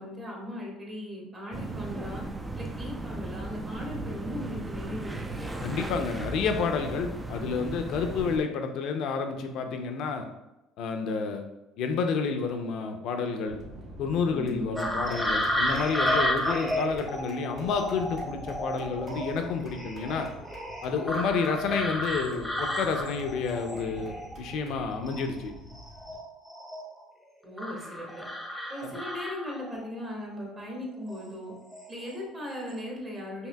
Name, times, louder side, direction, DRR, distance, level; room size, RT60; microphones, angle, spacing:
voice 1, 0.0-2.2 2.5-5.4 14.3-14.7 27.4-28.2 28.7-31.5 31.9-33.5, left 1 dB, 30° right, -2 dB, 1.4 m, -38 dB
sound 1, 1.5-8.4, right 2 dB, 15° right, 0.4 m, -36 dB
voice 2, 5.6-10.2 10.8-11.4 11.8-13.6 14.0-20.3 20.8-25.5 28.8-29.0, left 5 dB, 65° left, 5 dB, 0.5 m, -30 dB
sound 2, 13.5-26.1, equal, 50° right, 1.2 m, -46 dB
sound 3, 14.8-24.8 25.1-27.0 27.6-29.8 31.0-31.3 31.7-32.2 32.5-32.8, equal, 5° left, 0.8 m, -32 dB
4.7 x 2.7 x 2.2 m, 0.97 s
supercardioid pair, 85°, 0 cm